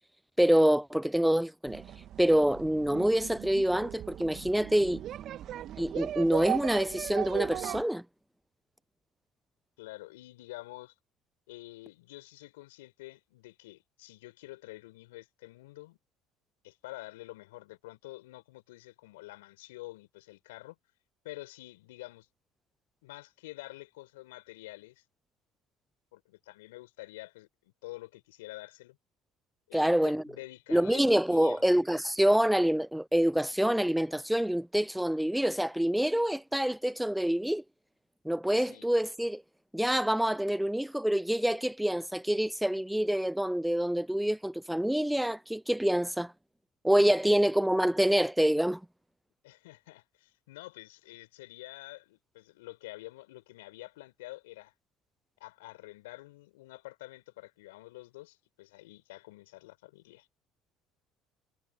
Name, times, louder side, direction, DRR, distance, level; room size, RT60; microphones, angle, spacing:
voice 1, 0.4-1.8 2.2-5.0 5.8-8.0 29.7-30.2 30.7-37.6 38.2-39.4 39.7-46.3 46.8-48.8, equal, 5° right, 0.6 m, -26 dB
sound 1, 1.7-7.8, right 11 dB, 50° right, 2.4 m, -38 dB
voice 2, 9.8-10.9 11.5-16.0 16.6-20.8 21.2-22.3 23.0-25.0 26.1-29.0 29.7-31.7 32.2-32.3 38.6-38.9 47.2-47.5 49.4-54.7 55.4-60.3, left 19 dB, 80° left, 5.4 m, -48 dB
hypercardioid pair, 70°, 0 cm